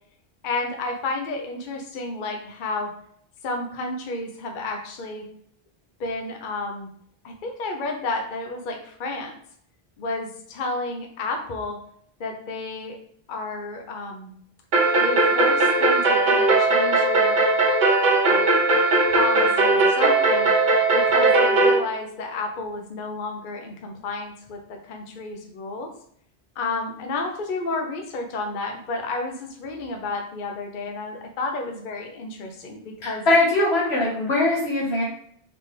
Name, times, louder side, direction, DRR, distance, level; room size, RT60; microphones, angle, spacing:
voice 1, 0.4-2.9 3.4-5.3 6.0-6.9 7.2-9.3 10.0-11.8 12.2-13.0 13.3-14.3 15.0-17.4 18.3-18.4 19.1-20.5 20.9-25.9 26.6-33.3, left 3 dB, 55° left, 2 dB, 0.8 m, -31 dB
sound 1, 14.7-21.8, right 2 dB, 50° right, 0.9 m, -19 dB
voice 2, 33.0-35.0, left 2 dB, 90° left, -5 dB, 1.7 m, -21 dB
4.1 x 3.3 x 3.2 m, 0.63 s
omnidirectional pair, 1.1 m